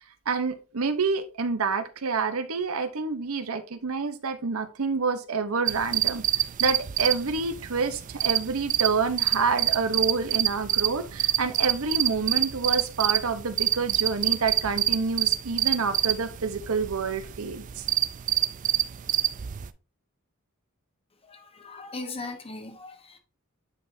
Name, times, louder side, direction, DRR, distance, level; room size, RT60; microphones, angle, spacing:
voice 1, 0.3-17.8, right 4 dB, 75° right, 0.8 m, -28 dB
sound 1, 5.7-19.7, right 12 dB, 35° right, 0.4 m, -27 dB
voice 2, 21.2-23.2, left 3 dB, 25° left, 1.1 m, -39 dB
8.8 x 4.9 x 2.6 m
head